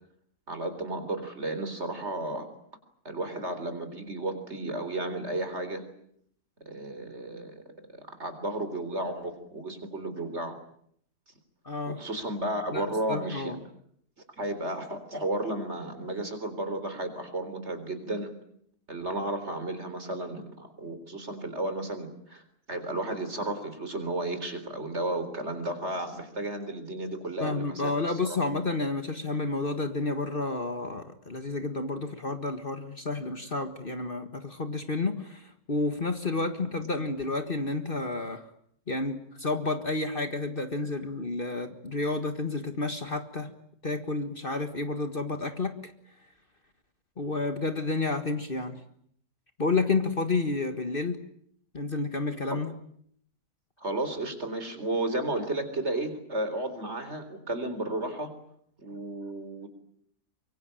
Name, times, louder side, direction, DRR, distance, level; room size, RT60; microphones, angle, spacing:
voice 1, 0.5-2.5 3.0-5.8 6.7-7.6 8.0-10.6 11.9-13.6 14.4-18.3 18.9-22.4 22.7-27.9 28.3-28.4 52.5-52.6 53.8-58.3 58.8-59.7, right 1 dB, 45° right, 9 dB, 4.2 m, -33 dB
voice 2, 11.6-12.0 12.7-13.6 27.4-38.5 38.9-43.5 43.8-45.9 47.2-48.8 49.6-51.2 51.7-52.7, left 3 dB, 35° left, 8 dB, 1.8 m, -30 dB
24.5 x 24.0 x 9.0 m, 0.68 s
omnidirectional pair, 1.6 m